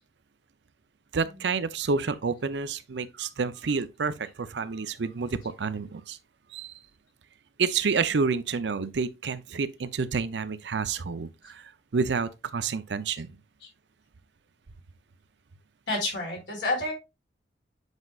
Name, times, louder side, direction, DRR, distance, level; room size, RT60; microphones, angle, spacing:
voice 1, 1.1-6.2 6.5-6.7 7.6-13.3, right 5 dB, 80° right, 0.6 m, -29 dB
voice 2, 15.9-16.9, left 2 dB, 85° left, 4.1 m, -29 dB
8.0 x 5.3 x 2.4 m
head